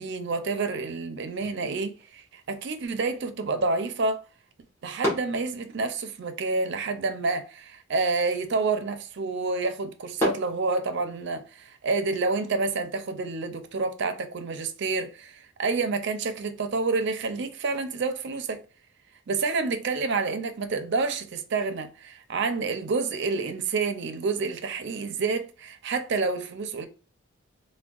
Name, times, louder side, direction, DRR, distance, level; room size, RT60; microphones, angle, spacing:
voice 1, 0.0-4.2 4.8-18.6 19.3-26.9, right 3 dB, 55° right, 0.4 m, -28 dB
sound 1, 1.3-11.3, left 1 dB, 10° left, 1.2 m, -38 dB
3.4 x 2.1 x 2.3 m
head